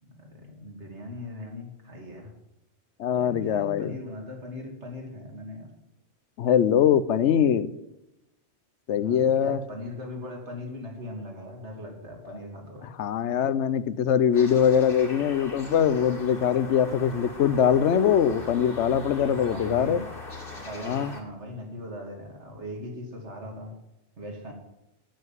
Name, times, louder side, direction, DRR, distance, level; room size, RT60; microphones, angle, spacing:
voice 1, 0.0-2.3 3.1-5.7 8.9-12.9 19.2-20.0 20.6-23.7 24.2-24.5, left 1 dB, 70° right, 1 dB, 2.8 m, -39 dB
voice 2, 3.0-3.9 6.4-7.7 8.9-9.6 13.0-20.0 20.8-21.1, left 8 dB, 75° left, 15 dB, 0.9 m, -22 dB
sound 1, 14.3-21.2, left 2 dB, 50° left, 2.2 m, -41 dB
9.0 x 7.7 x 9.2 m, 0.89 s
omnidirectional pair, 1.2 m